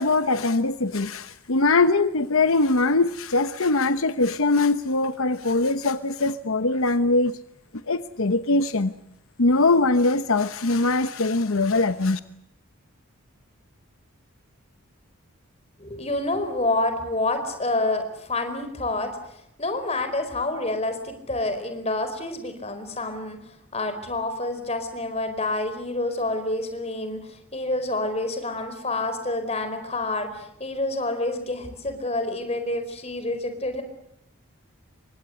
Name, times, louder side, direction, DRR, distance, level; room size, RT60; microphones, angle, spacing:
voice 1, 0.0-7.4 7.9-8.9 9.4-12.2, left 3 dB, 70° left, 11 dB, 1.0 m, -22 dB
voice 2, 15.8-33.8, left 2 dB, 30° left, 8 dB, 4.7 m, -28 dB
28.5 x 24.0 x 7.9 m, 0.76 s
head